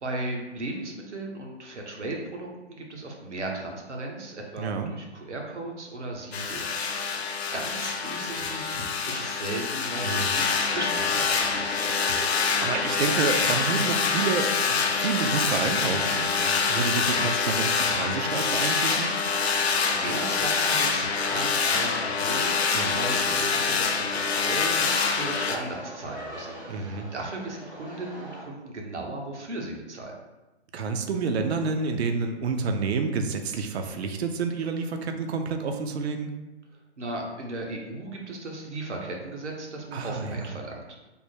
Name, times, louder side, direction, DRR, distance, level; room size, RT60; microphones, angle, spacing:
voice 1, 0.0-7.1 7.5-12.2 19.9-30.1 37.0-40.8, right 2 dB, 85° right, 0 dB, 0.9 m, -36 dB
voice 2, 4.6-4.9 10.0-10.3 12.3-19.1 22.7-23.0 23.3-23.4 26.7-27.1 30.7-36.3 39.9-40.5, right 5 dB, 65° right, 6 dB, 0.5 m, -29 dB
sound 1, 6.3-25.6, left 5 dB, 65° left, 0.6 m, -26 dB
sound 2, 10.6-28.4, right 1 dB, 5° right, 0.4 m, -41 dB
3.5 x 2.1 x 4.3 m, 1.1 s
figure-of-eight pair, 130°, 34 cm